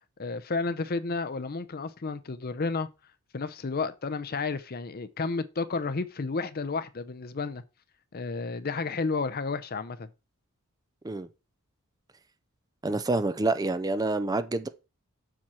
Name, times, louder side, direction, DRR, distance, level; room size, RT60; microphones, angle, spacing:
voice 1, 0.2-2.9 3.3-7.6 8.1-10.1, left 4 dB, 45° left, 0.6 m, -31 dB
voice 2, 12.8-14.7, right 2 dB, 15° right, 0.4 m, -27 dB
7.4 x 6.0 x 4.3 m
head